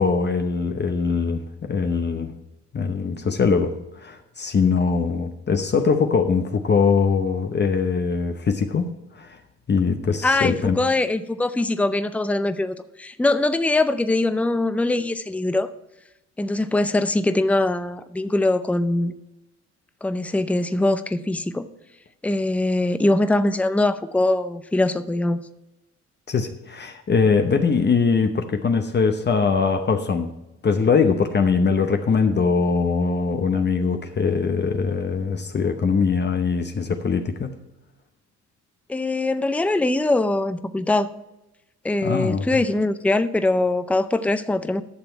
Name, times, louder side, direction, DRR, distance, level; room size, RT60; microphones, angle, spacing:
voice 1, 0.0-2.3 2.7-3.7 4.0-9.4 9.7-10.7 26.3-30.3 30.6-37.5 42.0-42.5, left 5 dB, 35° left, 6 dB, 0.8 m, -22 dB
voice 2, 10.2-15.7 16.4-19.1 20.0-21.7 22.2-25.4 38.9-41.1 41.8-44.8, left 2 dB, 5° left, 11 dB, 0.5 m, -22 dB
11.5 x 6.9 x 4.6 m, 0.92 s
cardioid pair, 90°, 30 cm